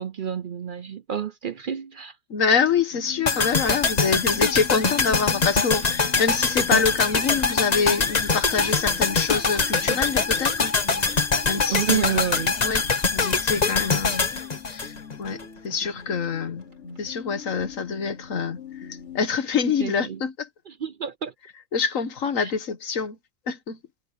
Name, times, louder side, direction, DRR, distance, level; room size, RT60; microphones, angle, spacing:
voice 1, 0.0-2.2 11.7-12.5 19.8-20.2 20.7-21.3 22.4-22.5, right 8 dB, 50° right, 0.6 m, -29 dB
voice 2, 2.3-10.7 11.5-12.2 12.6-12.8 13.1-14.3 14.7-16.7 17.0-20.5 21.7-23.2 23.5-23.8, left 5 dB, 85° left, 1.7 m, -26 dB
sound 1, 2.9-19.2, left 7 dB, 60° left, 1.5 m, -42 dB
sound 2, 3.3-15.4 15.7-15.8, left 4 dB, 35° left, 1.2 m, -23 dB
sound 3, 3.9-19.3, right 2 dB, 80° right, 6.1 m, -55 dB
omnidirectional pair, 1.3 m